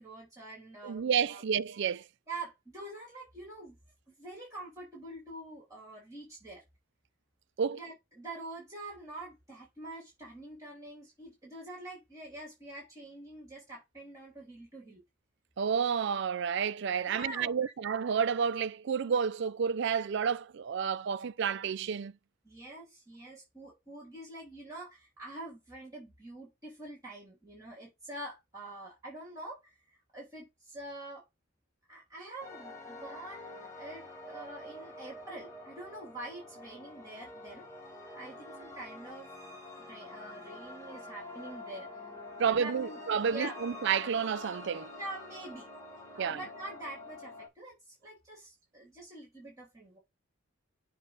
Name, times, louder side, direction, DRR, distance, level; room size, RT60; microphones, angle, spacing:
voice 1, 0.0-1.4 2.3-3.8 4.2-6.6 7.7-15.0 17.1-17.7 22.4-29.8 30.1-31.2 31.9-37.7 38.1-39.3 39.8-43.0 43.3-43.6 44.9-45.7 46.1-50.0, right 2 dB, 15° right, 2.5 m, -46 dB
voice 2, 0.8-2.0 7.6-7.8 15.6-22.1 42.4-44.9 46.2-46.4, right 7 dB, 55° right, 0.4 m, -30 dB
sound 1, 32.4-47.5, left 2 dB, 15° left, 1.4 m, -47 dB
7.2 x 2.4 x 5.4 m
head